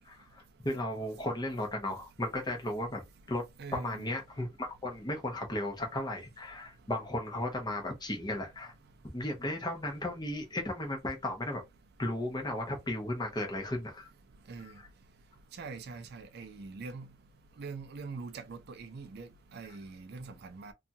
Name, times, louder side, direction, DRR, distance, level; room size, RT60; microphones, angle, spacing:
voice 1, 0.0-3.4 3.7-8.7 9.1-11.6 12.0-14.1 14.6-14.9, left 1 dB, 20° left, 0.8 m, -35 dB
voice 2, 3.6-4.1 14.5-14.7 15.6-17.1 17.6-20.7, right 4 dB, 50° right, 0.4 m, -43 dB
2.7 x 2.3 x 2.6 m
head